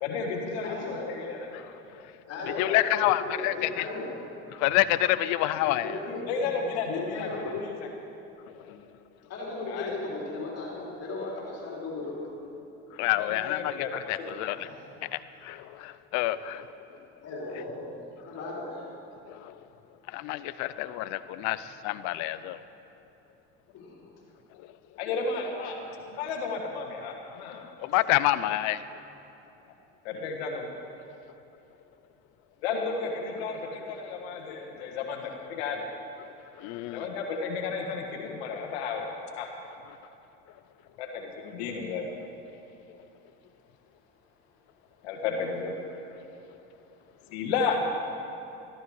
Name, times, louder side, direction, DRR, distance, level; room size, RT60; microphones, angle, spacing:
voice 1, 0.0-1.5 2.4-2.9 6.3-7.9 8.6-8.8 9.7-9.9 13.1-14.3 25.0-25.8 26.1-27.7 30.0-30.8 32.6-35.9 36.9-39.1 39.3-39.5 41.0-42.1 45.0-45.7 47.3-47.8, left 5 dB, 85° left, 2 dB, 1.5 m, -33 dB
voice 2, 0.6-1.1 2.0-4.1 5.6-6.2 6.9-7.7 9.3-12.2 14.5-14.9 16.9-18.9 21.4-21.5 23.7-24.1, left 3 dB, 50° left, -4 dB, 4.0 m, -36 dB
voice 3, 2.6-3.8 4.6-6.0 13.0-14.7 15.0-16.7 19.3-19.5 20.1-22.6 27.8-28.8 36.6-37.0, left 15 dB, 70° left, 15 dB, 0.6 m, -28 dB
14.0 x 14.0 x 4.8 m, 2.9 s
supercardioid pair, 95°, 31 cm